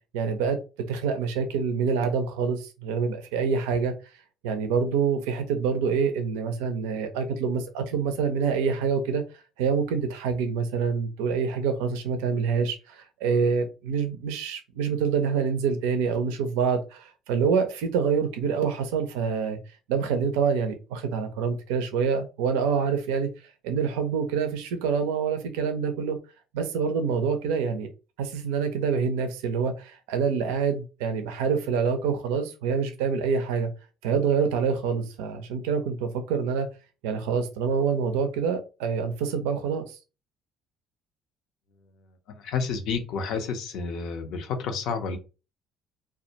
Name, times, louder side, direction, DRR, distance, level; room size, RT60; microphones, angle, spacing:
voice 1, 0.1-0.6 0.9-3.9 4.4-9.2 9.6-19.6 19.9-23.3 23.6-26.2 26.5-27.9 28.2-33.7 34.0-36.7 37.0-40.0, right 6 dB, 85° right, 0.4 m, -26 dB
voice 2, 42.3-45.2, left 5 dB, 70° left, 0.5 m, -30 dB
2.2 x 2.1 x 2.7 m
supercardioid pair, 65°, 0 cm